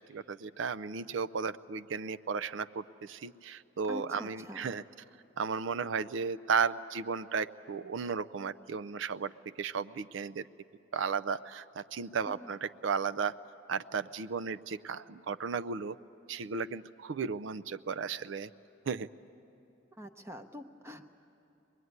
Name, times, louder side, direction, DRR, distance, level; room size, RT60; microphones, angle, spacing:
voice 1, 0.0-4.8 5.4-10.4 10.9-13.3 13.7-16.0 16.3-18.5 18.9-19.1, right 5 dB, 65° right, 12 dB, 0.5 m, -34 dB
voice 2, 3.9-4.7 12.3-12.5 20.0-21.1, left 1 dB, 15° right, 6 dB, 0.8 m, -45 dB
24.0 x 21.0 x 9.5 m, 2.8 s
head